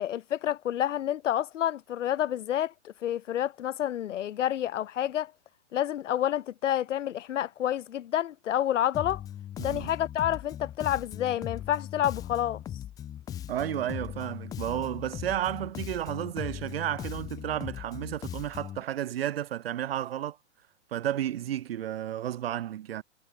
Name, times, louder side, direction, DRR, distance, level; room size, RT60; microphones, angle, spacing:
voice 1, 0.0-5.3 5.7-9.2 9.6-12.6, left 11 dB, 80° left, 1.2 m, -29 dB
Bass guitar, 8.9-18.8, left 11 dB, 10° left, 1.3 m, -39 dB
voice 2, 9.6-9.9 13.5-20.4 20.9-23.0, right 11 dB, 55° right, 1.1 m, -32 dB
hypercardioid pair, 180°, 36 cm